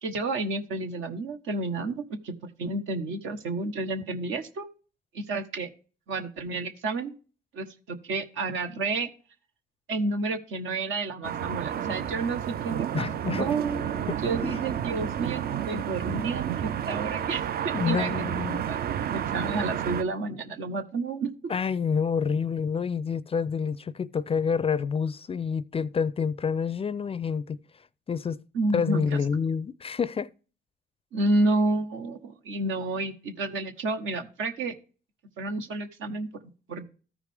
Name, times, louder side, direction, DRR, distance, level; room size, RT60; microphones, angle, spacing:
voice 1, 0.0-4.7 5.1-5.7 6.1-7.1 7.5-9.1 9.9-13.1 13.4-18.1 18.7-21.3 28.5-29.2 31.1-34.7 35.4-36.3 36.7-36.8, right 3 dB, 80° right, 1.3 m, -30 dB
sound 1, 11.2-20.0, right 9 dB, 50° right, 0.4 m, -31 dB
voice 2, 12.9-13.5 14.1-14.2 14.4-14.6 17.7-18.6 21.5-27.6 28.1-28.4 28.7-30.3, left 6 dB, 30° left, 0.4 m, -28 dB
14.0 x 4.9 x 3.4 m
cardioid pair, 90°, 20 cm